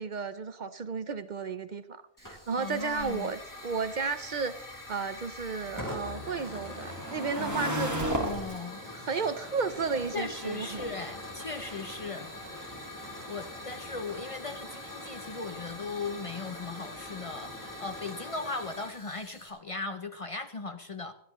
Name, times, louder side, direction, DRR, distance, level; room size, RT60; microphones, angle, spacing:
voice 1, 0.0-8.0 8.9-10.9, right 5 dB, 50° right, 12 dB, 0.7 m, -33 dB
Hiss / Fire, 2.2-19.5, left 1 dB, 20° left, 2.8 m, -43 dB
sound 1, 2.5-18.0, equal, 15° right, 1.7 m, -41 dB
voice 2, 2.6-3.3 7.4-8.8 10.1-12.3 13.3-21.1, left 3 dB, 40° left, 9 dB, 0.6 m, -38 dB
Explosion, 7.9-9.0, right 9 dB, 80° right, 0.9 m, -44 dB
18.5 x 13.0 x 3.0 m, 0.75 s
omnidirectional pair, 1.0 m